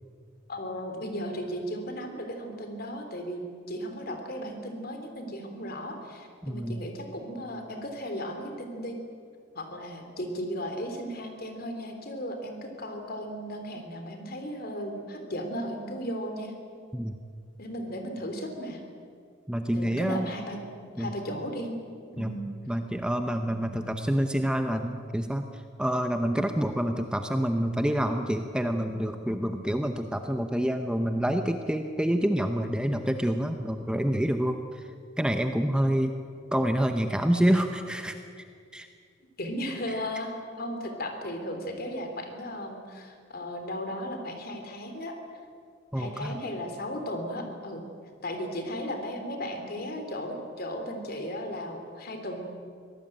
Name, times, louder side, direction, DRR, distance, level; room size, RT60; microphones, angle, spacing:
voice 1, 0.5-9.0 9.5-16.5 17.6-18.8 19.7-21.8 22.1-22.4 37.5-37.6 39.4-45.2 45.9-47.8 48.2-52.4, equal, 50° left, 5 dB, 3.3 m, -36 dB
voice 2, 6.4-6.9 16.9-17.2 19.5-20.3 21.0-21.1 22.2-22.3 22.7-34.9 35.2-36.1 36.5-38.1 38.7-38.9 39.9-40.0 45.9-46.4, equal, 5° right, 6 dB, 0.8 m, -27 dB
24.0 x 18.0 x 8.9 m, 2.2 s
head